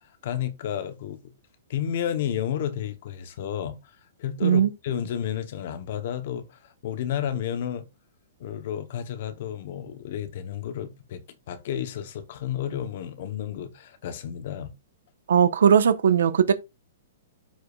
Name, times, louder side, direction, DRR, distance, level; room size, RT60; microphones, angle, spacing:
voice 1, 0.2-1.3 1.7-3.8 4.2-7.9 8.4-14.7, left 9 dB, 40° left, 1.0 m, -31 dB
voice 2, 15.3-16.5, right 7 dB, 90° right, 1.1 m, -18 dB
13.0 x 5.0 x 2.4 m
hypercardioid pair, 180°, 0 cm